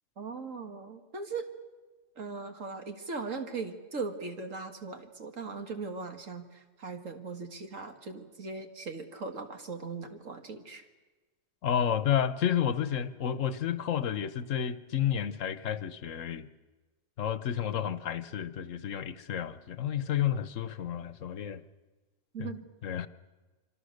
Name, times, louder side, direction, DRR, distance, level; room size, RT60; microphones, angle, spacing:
voice 1, 0.2-1.5 2.2-10.8 22.3-22.7, right 4 dB, 90° right, 5 dB, 2.3 m, -39 dB
voice 2, 11.6-16.5 17.2-21.6 22.4-22.5 22.8-23.1, left 9 dB, 80° left, 13 dB, 1.3 m, -31 dB
26.5 x 25.0 x 6.6 m, 1.2 s
omnidirectional pair, 1.3 m